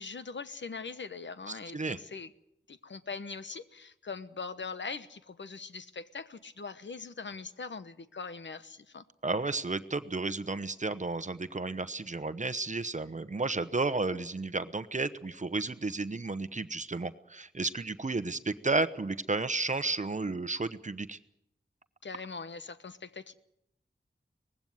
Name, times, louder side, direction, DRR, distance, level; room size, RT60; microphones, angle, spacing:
voice 1, 0.0-2.3 2.7-9.0 22.0-23.3, left 4 dB, 75° left, 12 dB, 1.1 m, -41 dB
voice 2, 9.2-21.2, right 3 dB, 40° right, 12 dB, 1.0 m, -32 dB
19.5 x 16.0 x 9.4 m, 0.80 s
wide cardioid pair, 70°, 19 cm